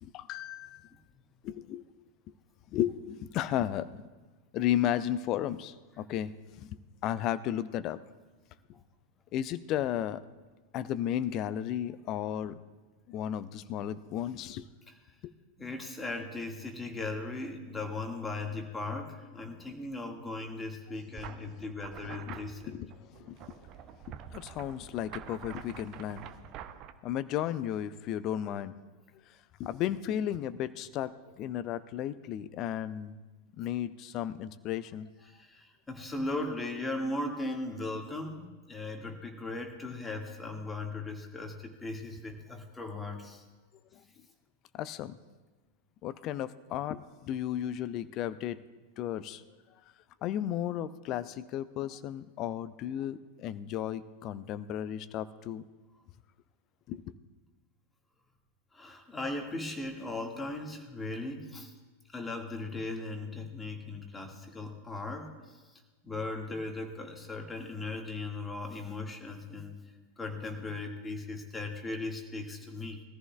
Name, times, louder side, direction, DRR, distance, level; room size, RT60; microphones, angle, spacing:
voice 1, 0.0-0.8 1.4-1.8 2.7-3.9 4.5-6.3 6.6-6.8 7.0-8.0 9.3-10.2 10.7-12.6 13.1-14.7 15.2-15.3 22.2-23.7 24.1-26.3 27.0-28.8 29.6-33.2 33.6-35.1 43.9-44.0 44.7-45.2 46.0-48.6 49.0-49.4 50.2-55.6 56.9-57.0, left 11 dB, 35° left, 16 dB, 0.5 m, -34 dB
voice 2, 15.6-22.7 35.3-43.4 58.7-61.7 62.1-65.6 66.0-69.8 70.2-73.0, left 2 dB, 10° left, 2 dB, 1.9 m, -38 dB
sound 1, 21.2-26.9, right 10 dB, 35° right, 0.7 m, -47 dB
21.5 x 14.0 x 2.4 m, 1.3 s
figure-of-eight pair, 90°, 0 cm